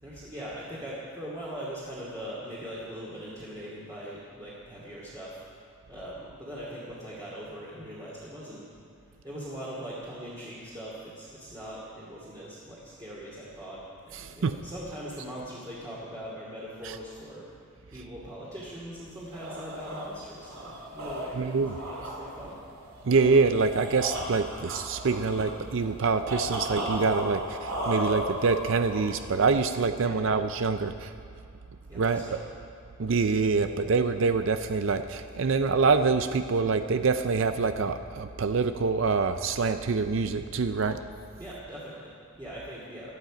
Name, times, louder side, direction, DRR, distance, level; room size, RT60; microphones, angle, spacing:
voice 1, 0.0-8.7 9.0-21.4 21.7-22.6 29.8-30.2 31.9-32.5 41.4-43.2, equal, 15° right, -8 dB, 2.4 m, -41 dB
voice 2, 14.1-14.6 16.8-17.0 21.3-21.8 23.0-31.1 31.9-32.2 33.0-41.0, right 4 dB, 60° right, 9 dB, 0.5 m, -25 dB
sound 1, 19.1-29.4, right 1 dB, 75° right, 2.5 m, -35 dB
17.5 x 11.5 x 5.1 m, 2.5 s
head